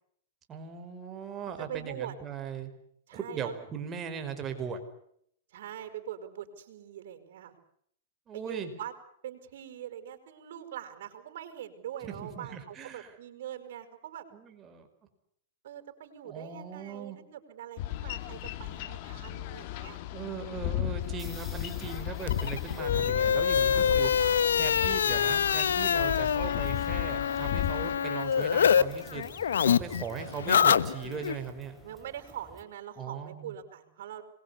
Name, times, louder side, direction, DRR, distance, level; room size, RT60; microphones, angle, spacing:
voice 1, 0.5-2.7 3.1-4.8 8.3-8.7 12.0-13.1 14.3-14.9 16.2-17.2 20.1-31.8 33.0-33.5, right 6 dB, 20° right, 6 dB, 4.9 m, -39 dB
voice 2, 1.6-2.2 3.1-3.6 5.5-7.6 8.3-8.9 9.2-14.3 15.6-20.0 23.7-24.4 31.8-34.2, right 10 dB, 65° right, 7 dB, 5.5 m, -43 dB
Boat Water vehicle, 17.8-28.0, left 13 dB, 50° left, 1.9 m, -35 dB
sound 1, 21.0-32.6, left 1 dB, 5° left, 3.9 m, -52 dB
sound 2, 22.2-28.8 29.1-31.4, left 8 dB, 85° left, 1.2 m, -26 dB
26.5 x 22.0 x 8.5 m, 0.69 s
hypercardioid pair, 140°, 0 cm